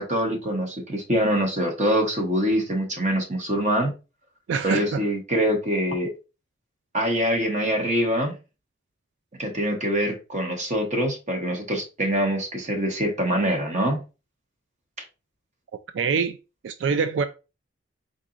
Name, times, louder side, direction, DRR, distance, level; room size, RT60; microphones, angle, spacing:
voice 1, 0.0-3.9 4.6-6.1 6.9-8.3 9.4-14.0 15.0-15.1, equal, 40° right, 1.3 m, -24 dB
voice 2, 4.5-5.0 15.9-16.4 16.6-17.2, right 5 dB, 80° right, 0.3 m, -24 dB
4.5 x 3.9 x 2.4 m
head